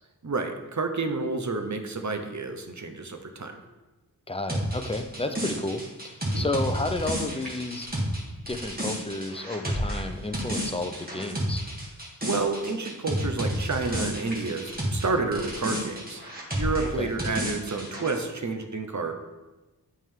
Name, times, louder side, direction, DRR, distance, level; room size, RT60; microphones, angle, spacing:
voice 1, 0.2-3.5 6.2-6.5 12.2-16.2 16.5-19.1, right 3 dB, 45° right, 6 dB, 0.7 m, -30 dB
voice 2, 4.3-7.9 8.5-11.6 16.8-17.1, left 2 dB, 15° left, 6 dB, 0.5 m, -31 dB
sound 1, 4.5-15.1 15.3-18.2, equal, 20° right, 1.7 m, -31 dB
8.2 x 3.6 x 3.6 m, 1.1 s
wide cardioid pair, 40°, 40 cm